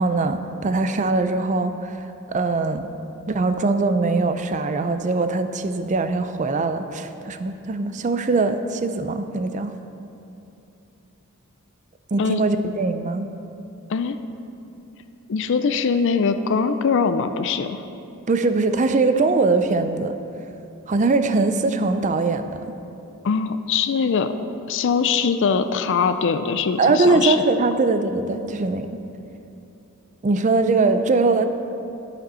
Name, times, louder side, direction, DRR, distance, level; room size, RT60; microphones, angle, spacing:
voice 1, 0.0-2.9 3.3-9.7 12.1-13.3 18.3-20.1 20.9-22.6 26.8-28.9 30.2-31.4, right 3 dB, 35° right, 9 dB, 0.4 m, -21 dB
voice 2, 15.3-17.8 23.2-24.3 24.7-27.4, left 5 dB, 60° left, 10 dB, 0.4 m, -22 dB
12.0 x 5.1 x 5.5 m, 2.8 s
head